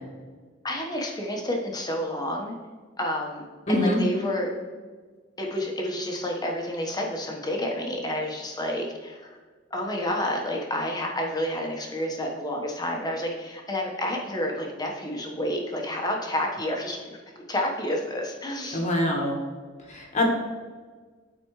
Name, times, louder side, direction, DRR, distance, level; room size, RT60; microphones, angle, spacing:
voice 1, 0.6-2.5 3.0-4.5 5.4-9.4 9.7-17.0 17.5-18.9, left 1 dB, 20° left, 0 dB, 1.1 m, -29 dB
voice 2, 3.7-4.0 18.7-19.4 19.9-20.3, left 1 dB, 35° left, -1 dB, 1.3 m, -24 dB
12.5 x 4.3 x 3.1 m, 1.5 s
head